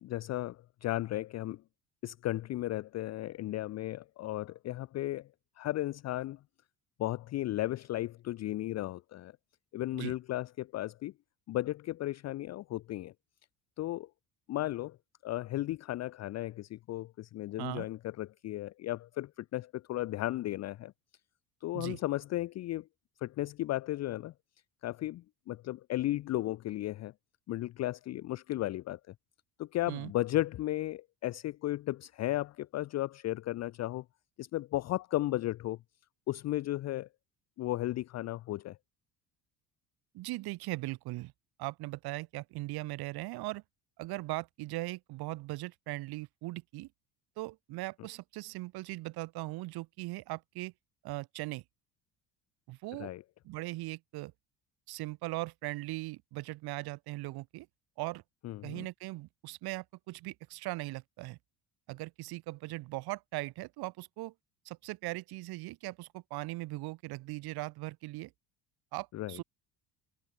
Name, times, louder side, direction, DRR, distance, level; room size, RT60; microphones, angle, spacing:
voice 1, 0.0-1.6 2.0-5.3 5.6-6.4 7.0-9.3 9.7-11.1 11.5-13.1 13.8-14.1 14.5-15.0 15.2-20.9 21.6-22.9 23.2-24.3 24.8-27.1 27.5-29.0 29.6-34.0 34.4-35.8 36.3-37.1 37.6-38.8 53.0-53.2 58.4-58.9 69.1-69.4, left 15 dB, 40° left, 0.4 m, -35 dB
voice 2, 40.1-41.3 41.6-43.6 44.0-46.9 47.4-50.7 51.0-51.6 52.7-53.1 53.4-54.3 54.9-57.7 58.0-58.2 58.6-61.4 61.9-64.3 64.6-68.3 68.9-69.4, right 20 dB, 65° right, 0.8 m, -39 dB
supercardioid pair, 90°, 40 cm